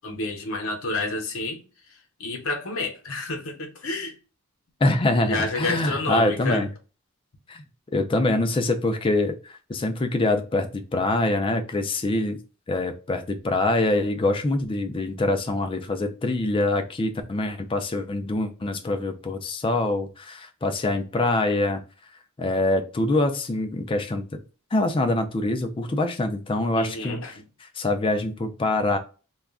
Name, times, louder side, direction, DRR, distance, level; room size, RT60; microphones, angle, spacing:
voice 1, 0.0-1.6 2.2-4.1 5.2-6.7 26.8-27.5, left 2 dB, 65° left, 0.8 m, -29 dB
voice 2, 4.8-6.7 7.5-7.6 7.9-9.4 9.7-12.4 12.7-21.8 22.4-24.4 24.7-29.0, left 2 dB, 25° left, 0.3 m, -24 dB
2.3 x 2.1 x 3.5 m
head